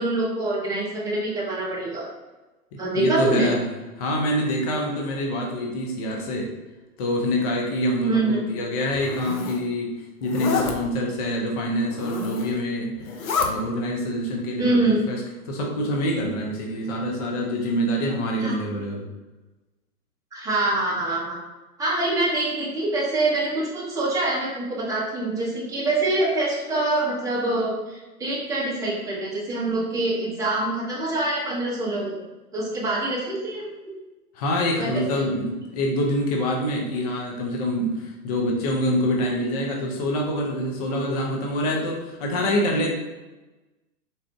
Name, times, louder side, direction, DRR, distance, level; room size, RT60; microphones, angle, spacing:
voice 1, 0.0-2.1 2.8-3.5 8.1-8.4 14.6-15.0 18.4-18.5 20.3-21.4 21.8-32.2 32.5-33.7 34.8-35.2, right 2 dB, 5° right, -6 dB, 0.9 m, -25 dB
voice 2, 3.0-3.6 4.0-6.5 7.0-9.9 10.2-15.2 15.4-19.0 34.3-42.9, equal, 25° left, -1 dB, 0.5 m, -26 dB
Zipper (clothing), 8.8-9.6 10.2-10.7 11.8-12.6 13.0-13.5, left 5 dB, 65° left, 0.7 m, -28 dB
4.0 x 2.4 x 3.4 m, 1.1 s
hypercardioid pair, 120°, 45 cm